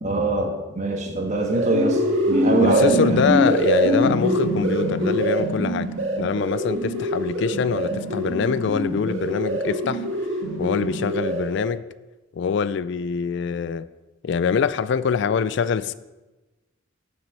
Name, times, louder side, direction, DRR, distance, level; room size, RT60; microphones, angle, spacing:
voice 1, 0.0-3.2, right 1 dB, 35° right, 2 dB, 1.4 m, -24 dB
sound 1, 1.2-11.7, right 1 dB, 70° right, 1.9 m, -24 dB
voice 2, 2.6-5.9 6.2-10.0 10.6-11.8 12.3-13.9 14.2-15.9, left 6 dB, 60° left, 15 dB, 0.3 m, -24 dB
7.3 x 6.1 x 7.4 m, 1.1 s
head